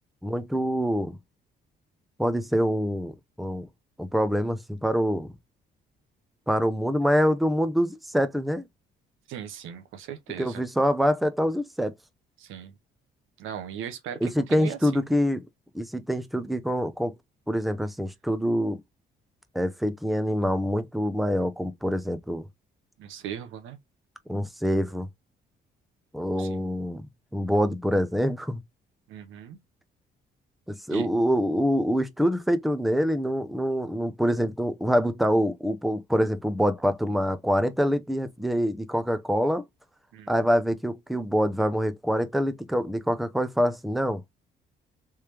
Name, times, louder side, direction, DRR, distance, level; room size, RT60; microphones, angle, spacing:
voice 1, 0.2-1.2 2.2-3.1 3.4-3.7 4.0-5.3 6.5-8.6 10.4-11.9 14.2-15.4 15.7-17.1 17.5-18.8 19.5-22.5 24.3-25.1 26.1-27.0 27.3-28.6 30.7-39.6 40.3-44.2, equal, ahead, 0.6 m, -25 dB
voice 2, 9.3-10.6 12.4-12.7 13.4-15.0 23.0-23.8 26.4-26.6 29.1-29.6 30.9-31.1 40.1-40.4, right 9 dB, 90° right, 0.8 m, -38 dB
3.4 x 3.2 x 2.9 m
cardioid pair, 90°, 20 cm